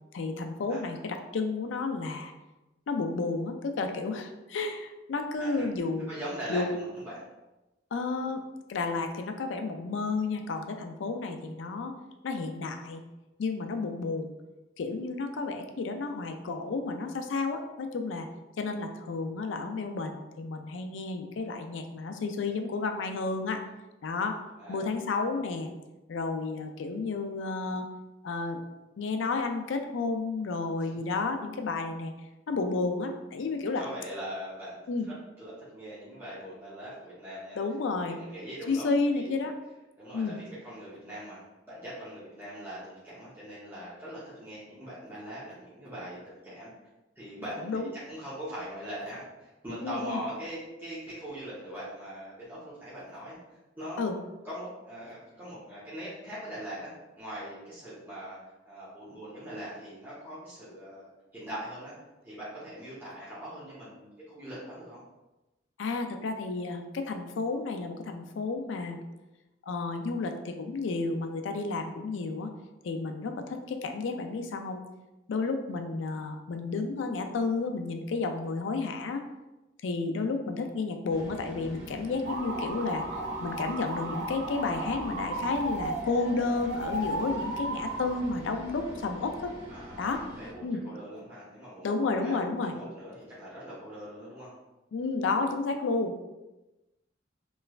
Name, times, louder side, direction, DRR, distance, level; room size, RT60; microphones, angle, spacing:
voice 1, 0.1-2.3 2.9-6.1 6.5-6.8 7.9-8.4 8.7-12.0 12.2-13.0 13.4-14.3 14.8-18.3 18.6-23.6 24.0-24.4 24.7-25.7 26.1-27.9 28.2-28.6 29.0-32.1 32.5-33.8 34.9-35.1 37.6-38.2 38.7-39.5 40.1-40.4 47.6-47.9 49.8-50.2 54.0-54.2 65.8-69.0 69.6-72.5 72.8-74.8 75.3-79.2 79.8-89.5 90.0-90.2 90.6-90.8 91.8-92.7 94.9-96.1, left 3 dB, 75° left, 5 dB, 0.4 m, -31 dB
voice 2, 6.1-7.2 24.6-24.9 30.8-31.0 33.7-34.8 35.4-37.6 38.1-38.9 39.1-39.3 40.0-46.7 47.2-53.4 53.7-54.1 54.4-58.4 58.6-61.1 61.3-61.9 62.2-65.0 89.7-91.9 92.2-94.5, equal, 10° right, -11 dB, 0.8 m, -41 dB
sound 1, 81.1-90.5, left 1 dB, 75° right, 1.0 m, -44 dB
sound 2, 82.3-88.2, right 1 dB, 60° right, 0.4 m, -35 dB
3.2 x 3.0 x 2.3 m, 1.0 s
head